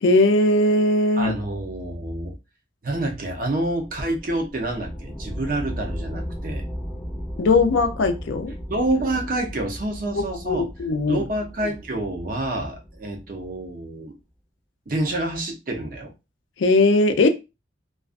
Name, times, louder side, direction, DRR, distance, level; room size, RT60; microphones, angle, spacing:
voice 1, 0.0-1.3 7.4-8.5 10.1-11.2 16.6-17.3, left 2 dB, 80° left, 0.4 m, -19 dB
voice 2, 1.2-2.3 2.8-6.6 8.7-10.7 11.1-14.1 14.9-16.1, right 1 dB, 45° right, 0.6 m, -27 dB
sound 1, 3.8-13.8, equal, 5° left, 0.3 m, -36 dB
2.4 x 2.2 x 2.4 m
head